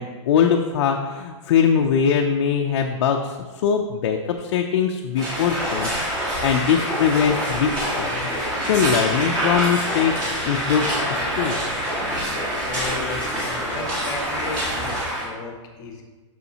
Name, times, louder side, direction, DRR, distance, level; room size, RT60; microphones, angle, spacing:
voice 1, 0.0-6.0 6.4-8.3 8.6-10.1 10.5-11.6, left 7 dB, 55° left, 2 dB, 0.5 m, -22 dB
sound 1, 5.2-15.3, equal, 25° right, 1.9 m, -25 dB
voice 2, 12.6-16.0, left 3 dB, 25° left, 2 dB, 0.8 m, -35 dB
6.8 x 6.3 x 2.9 m, 1.4 s
hypercardioid pair, 160°, 16 cm